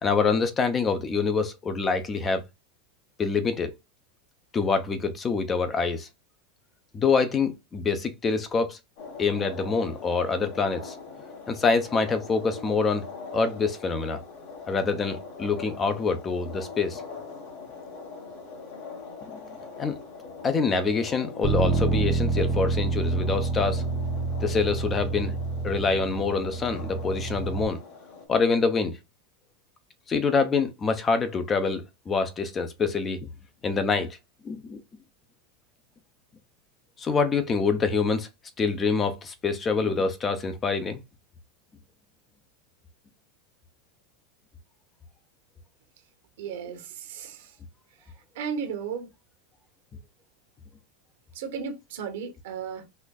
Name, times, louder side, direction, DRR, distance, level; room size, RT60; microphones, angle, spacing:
voice 1, 0.0-2.4 3.2-3.7 4.5-6.1 6.9-8.8 9.2-11.0 11.5-13.1 13.3-14.2 14.7-17.0 19.3-19.4 19.8-20.0 20.4-23.8 24.4-25.4 25.6-27.8 28.3-29.0 30.1-33.3 33.6-34.2 34.4-34.8 37.0-38.3 38.6-41.0, left 4 dB, 25° left, 0.6 m, -26 dB
sound 1, 9.0-28.3, left 4 dB, 60° left, 1.4 m, -42 dB
Bass guitar, 21.4-27.7, right 4 dB, 40° right, 0.5 m, -28 dB
voice 2, 46.4-47.4 48.4-49.1 51.3-52.8, right 6 dB, 75° right, 1.1 m, -34 dB
4.2 x 2.5 x 2.3 m
supercardioid pair, 120°, 0 cm